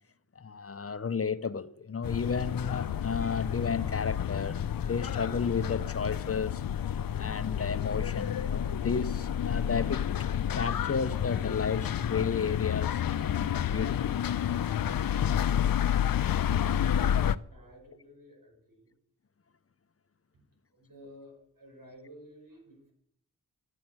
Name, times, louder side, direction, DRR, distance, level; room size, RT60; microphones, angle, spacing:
voice 1, 0.4-6.6 7.1-14.3, left 5 dB, 45° left, 0.7 m, -33 dB
sound 1, 2.0-17.4, left 9 dB, 80° left, 0.5 m, -30 dB
voice 2, 17.5-18.9 20.3-20.4 20.7-22.9, equal, 75° right, 5.4 m, -53 dB
10.5 x 7.8 x 8.6 m
wide cardioid pair, 65°, 34 cm